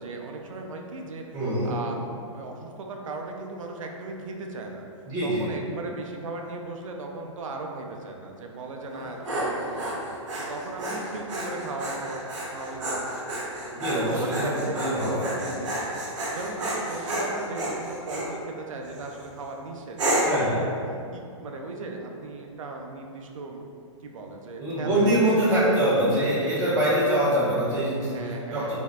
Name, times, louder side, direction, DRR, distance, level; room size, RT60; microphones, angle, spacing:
voice 1, 0.0-1.2 1.6-2.0 2.3-4.8 5.2-10.0 10.4-12.2 12.5-13.2 14.1-20.7 21.1-23.6 24.0-25.6 26.0-27.0 28.1-28.7, right 3 dB, 85° right, 2 dB, 0.5 m, -37 dB
voice 2, 1.3-1.8 5.0-5.4 13.7-15.3 20.2-20.6 24.6-28.2 28.5-28.7, right 1 dB, 25° right, -10 dB, 1.4 m, -24 dB
Dog, 8.9-18.3 18.9-19.3 20.0-20.5, right 1 dB, 65° right, 1.1 m, -30 dB
4.3 x 2.7 x 2.3 m, 2.4 s
hypercardioid pair, 150°, 16 cm